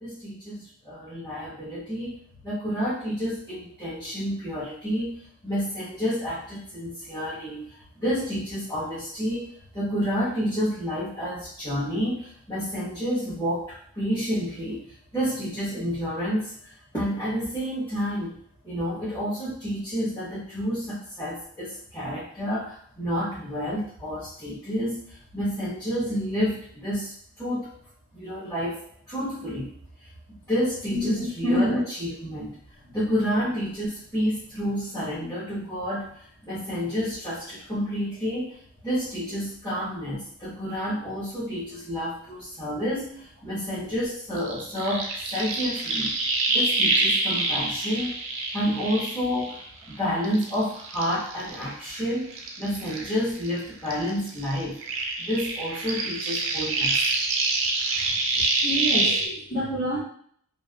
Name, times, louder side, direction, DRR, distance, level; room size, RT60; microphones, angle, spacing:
voice 1, 0.0-2.2 2.4-18.4 18.6-27.7 28.1-28.8 29.1-29.7 30.0-30.1 30.5-32.6 32.9-38.6 38.8-46.1 46.5-48.1 48.5-54.8 55.2-57.0, equal, 15° left, -14 dB, 1.3 m, -29 dB
voice 2, 30.9-31.3 58.6-60.0, equal, 85° left, -14 dB, 1.5 m, -28 dB
sound 1, 44.4-49.9 50.2-53.6 53.9-59.3, right 3 dB, 70° right, 0.5 m, -26 dB
3.3 x 2.5 x 2.4 m, 0.62 s
head